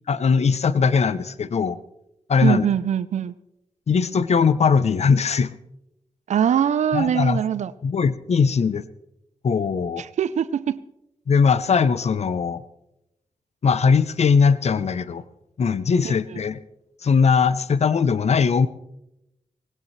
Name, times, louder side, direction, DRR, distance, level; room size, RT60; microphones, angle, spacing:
voice 1, 0.1-1.8 2.3-2.7 3.9-5.5 6.9-7.4 7.8-8.8 9.4-10.0 11.3-12.6 13.6-15.2 15.6-16.6 17.0-18.7, left 5 dB, 65° left, 0.7 m, -20 dB
voice 2, 2.4-3.3 6.3-7.7 10.0-10.8 16.0-16.1, right 9 dB, 85° right, 0.5 m, -22 dB
19.5 x 17.0 x 3.2 m
cardioid pair, 45°, 12 cm